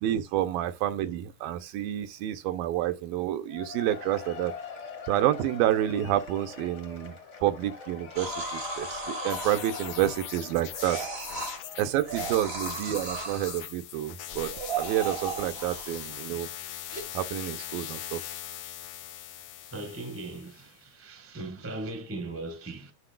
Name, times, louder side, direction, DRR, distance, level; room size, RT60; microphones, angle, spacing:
voice 1, 0.0-4.6 5.0-11.1 11.8-14.5 14.8-16.5 17.1-18.2, right 12 dB, 80° right, 2.3 m, -29 dB
Cheering / Applause / Crowd, 3.5-12.4, left 6 dB, 35° left, 1.1 m, -43 dB
sound 1, 8.1-10.4 10.7-11.6 12.0-13.7 14.3-16.3 16.9-17.0, right 3 dB, 55° right, 0.6 m, -36 dB
sound 2, 9.3-20.7, left 12 dB, 75° left, 1.7 m, -41 dB
voice 2, 19.7-22.9, right 2 dB, 15° right, 0.5 m, -38 dB
9.8 x 7.7 x 2.4 m
omnidirectional pair, 4.3 m